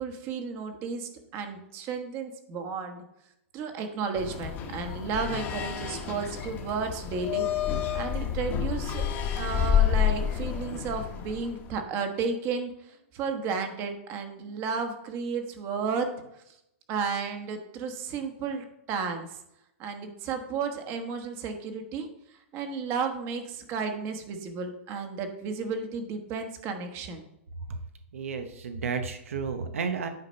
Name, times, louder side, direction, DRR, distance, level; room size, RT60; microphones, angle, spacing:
voice 1, 0.0-3.0 3.5-9.1 9.4-16.1 16.9-19.4 19.8-22.1 22.5-27.2, right 5 dB, 35° right, 6 dB, 1.2 m, -33 dB
sound 1, 4.1-11.7, left 9 dB, 30° left, 1.2 m, -29 dB
voice 2, 28.1-30.1, right 5 dB, 85° right, 7 dB, 0.9 m, -32 dB
9.0 x 4.1 x 5.3 m, 0.82 s
hypercardioid pair, 140°, 7 cm